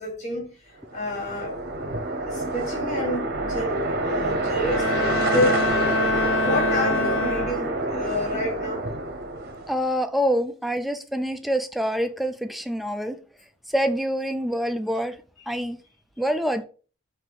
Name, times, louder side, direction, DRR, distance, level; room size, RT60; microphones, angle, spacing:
voice 1, 0.0-1.6 2.2-4.9 5.2-5.7 6.3-8.8 15.5-15.6, left 1 dB, 35° left, 2.2 m, -29 dB
sound 1, 0.9-9.9, right 2 dB, 50° right, 0.8 m, -27 dB
Bowed string instrument, 4.6-8.0, left 4 dB, 65° left, 0.4 m, -27 dB
voice 2, 9.7-13.2 13.7-15.2 15.5-15.8 16.2-16.6, equal, ahead, 0.3 m, -26 dB
5.0 x 2.7 x 3.9 m
head